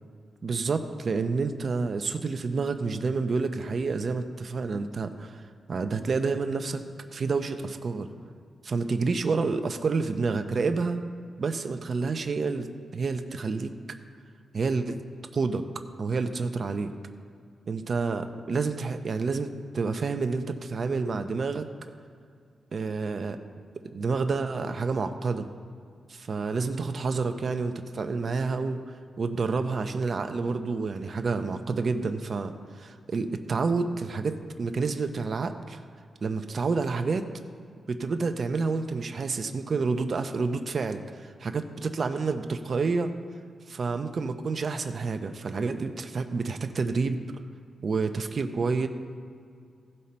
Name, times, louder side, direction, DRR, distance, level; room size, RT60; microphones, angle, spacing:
voice 1, 0.4-5.4 5.7-6.8 7.1-8.1 8.6-11.0 11.4-13.7 14.5-15.0 15.3-15.6 16.0-16.9 17.7-21.7 22.7-23.4 23.9-25.5 26.1-28.8 29.2-35.8 36.2-37.3 37.9-43.1 43.7-47.2 47.8-48.9, right 4 dB, 55° right, 7 dB, 0.7 m, -29 dB
15.5 x 5.5 x 4.3 m, 2.3 s
cardioid pair, 85°, 0 cm